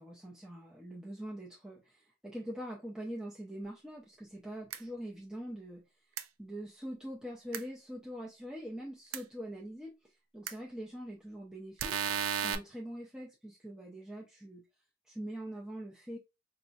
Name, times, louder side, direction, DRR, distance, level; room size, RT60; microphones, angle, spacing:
voice 1, 0.0-5.8 6.4-12.0 12.4-14.7 15.1-16.2, equal, 5° right, 0.5 m, -43 dB
sound 1, 4.7-4.8 6.2-6.3 7.5-7.6 9.1-9.2 10.5-10.6 11.8-12.6, right 8 dB, 85° right, 0.4 m, -33 dB
4.0 x 2.6 x 2.3 m
head